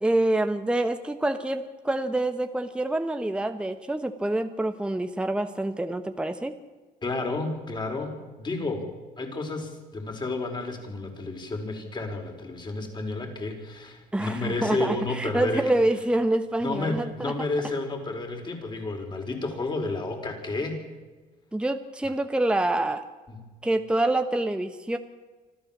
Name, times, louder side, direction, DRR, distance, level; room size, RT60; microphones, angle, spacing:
voice 1, 0.0-6.5 14.1-17.3 21.5-23.0 23.6-25.0, right 1 dB, 5° right, 8 dB, 1.1 m, -26 dB
voice 2, 7.0-8.9 9.2-15.7 16.6-20.8 23.3-23.4, left 2 dB, 25° left, 4 dB, 4.9 m, -31 dB
25.5 x 14.5 x 7.4 m, 1.3 s
cardioid pair, 110°, 17 cm